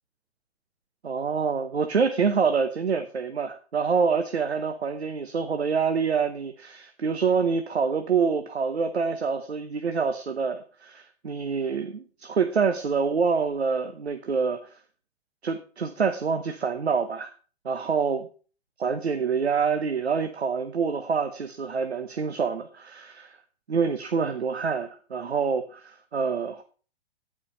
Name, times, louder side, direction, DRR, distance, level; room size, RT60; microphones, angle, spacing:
voice 1, 1.0-14.7 15.4-17.3 17.6-18.3 18.8-23.4 23.7-26.6, right 5 dB, 85° right, 7 dB, 1.1 m, -26 dB
15.0 x 5.0 x 5.4 m, 0.39 s
hypercardioid pair, 120°, 31 cm